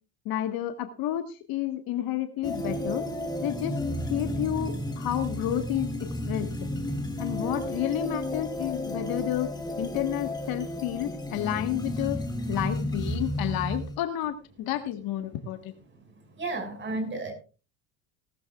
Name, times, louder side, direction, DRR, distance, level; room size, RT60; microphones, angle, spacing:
voice 1, 0.2-3.0 3.4-3.8 4.1-6.7 7.2-9.5 9.8-12.2 12.5-15.7, left 12 dB, 65° left, 8 dB, 1.6 m, -30 dB
sound 1, 2.4-14.0, left 1 dB, 10° left, 2.0 m, -32 dB
voice 2, 15.9-17.3, right 2 dB, 30° right, 5 dB, 5.8 m, -34 dB
18.0 x 13.0 x 2.4 m, 0.33 s
supercardioid pair, 115°, 38 cm